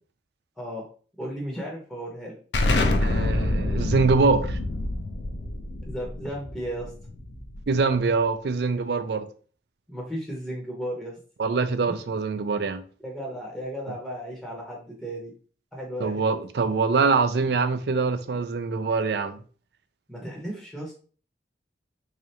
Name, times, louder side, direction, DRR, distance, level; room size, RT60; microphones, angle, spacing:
voice 1, 0.6-0.9 1.2-2.4 5.8-6.9 9.9-11.2 11.8-11.9 13.0-15.3 15.7-16.2 20.1-20.9, equal, ahead, 0.7 m, -35 dB
Explosion, 2.5-7.9, left 2 dB, 75° left, 0.6 m, -26 dB
voice 2, 3.0-4.6 7.7-9.3 11.4-12.8 16.0-19.4, right 4 dB, 65° right, 0.4 m, -24 dB
3.7 x 3.2 x 2.8 m
head